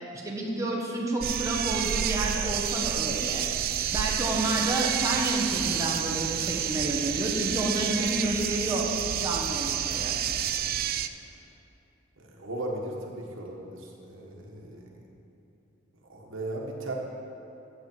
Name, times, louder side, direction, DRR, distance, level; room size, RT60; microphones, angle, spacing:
voice 1, 0.1-3.4 3.9-10.1, right 1 dB, 15° right, -3 dB, 1.3 m, -30 dB
sound 1, 1.2-11.1, right 10 dB, 45° right, 0.4 m, -29 dB
voice 2, 12.2-14.9 16.1-16.9, right 1 dB, 70° right, -1 dB, 1.5 m, -37 dB
14.5 x 7.8 x 4.5 m, 2.8 s
head